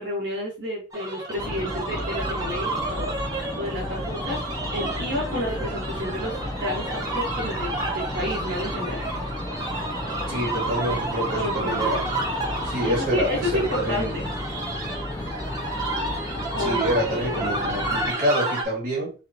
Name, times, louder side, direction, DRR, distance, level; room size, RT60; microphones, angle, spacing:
voice 1, 0.0-3.2 3.5-4.4 4.7-9.0 10.6-11.0 11.3-12.0 12.8-14.3 16.5-16.8, left 1 dB, 75° right, -4 dB, 1.3 m, -30 dB
sound 1, 0.9-18.6, right 2 dB, 20° right, 0.7 m, -31 dB
sound 2, 1.4-18.1, left 1 dB, 20° left, 0.3 m, -33 dB
voice 2, 10.3-12.0 12.6-14.1 16.6-19.1, equal, 45° right, -5 dB, 2.0 m, -27 dB
4.8 x 2.2 x 2.8 m, 0.33 s
head